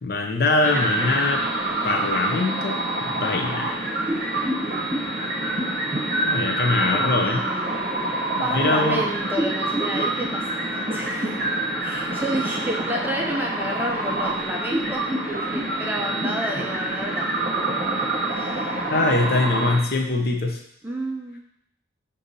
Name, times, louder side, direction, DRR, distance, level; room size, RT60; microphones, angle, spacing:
voice 1, 0.0-1.4 1.8-3.8 6.2-7.4 8.5-9.0 18.9-20.6, left 2 dB, 50° left, 3 dB, 0.5 m, -23 dB
sound 1, 0.6-19.8, right 2 dB, 45° right, 0.8 m, -26 dB
voice 2, 6.0-8.1 8.4-10.4 10.7-11.4 11.8-15.0 15.5-18.8 20.8-21.4, right 1 dB, 10° right, -1 dB, 0.4 m, -31 dB
6.6 x 2.7 x 2.6 m, 0.73 s
head